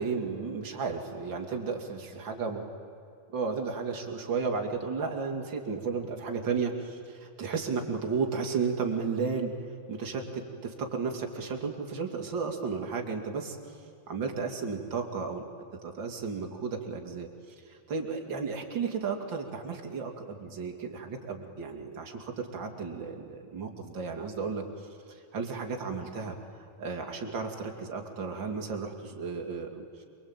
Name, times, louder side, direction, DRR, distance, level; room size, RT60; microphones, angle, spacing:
voice 1, 0.0-2.6 3.3-9.5 9.9-13.6 14.1-17.3 17.6-24.9 25.3-26.4 26.8-29.9, right 5 dB, 30° right, 2 dB, 2.9 m, -33 dB
28.0 x 22.5 x 9.0 m, 2.5 s
omnidirectional pair, 4.6 m